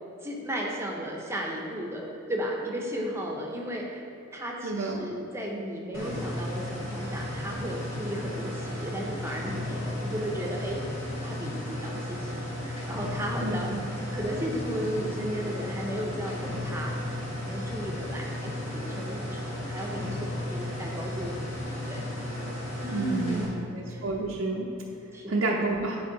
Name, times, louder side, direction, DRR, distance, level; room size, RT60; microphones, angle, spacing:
voice 1, 0.2-4.0 4.3-10.8 11.2-13.7 14.1-17.0 17.5-22.0 22.8-24.0 25.1-25.4, equal, 15° right, -1 dB, 0.8 m, -35 dB
voice 2, 4.6-5.1 13.4-13.8 22.9-23.4 23.7-24.7 25.3-26.0, right 2 dB, 75° right, -2 dB, 0.6 m, -29 dB
sound 1, 5.9-23.5, left 1 dB, 80° left, 1.6 m, -34 dB
10.0 x 3.5 x 4.0 m, 2.8 s
head